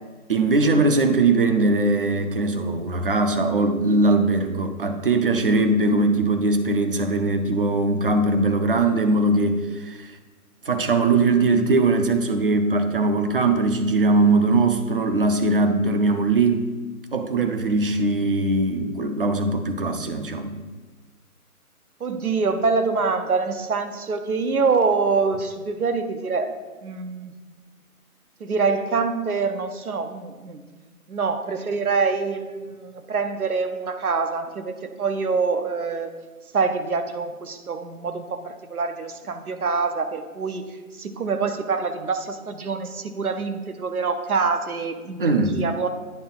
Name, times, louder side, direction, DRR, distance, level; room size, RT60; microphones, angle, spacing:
voice 1, 0.3-10.2 10.7-16.7 17.1-20.6 45.2-45.6, right 2 dB, 40° right, 7 dB, 0.6 m, -21 dB
voice 2, 22.0-27.3 28.4-30.6 31.1-36.1 36.5-40.6 40.9-45.2 45.5-45.9, right 4 dB, 75° right, 7 dB, 0.9 m, -25 dB
9.3 x 3.4 x 5.6 m, 1.3 s
figure-of-eight pair, 150°, 44 cm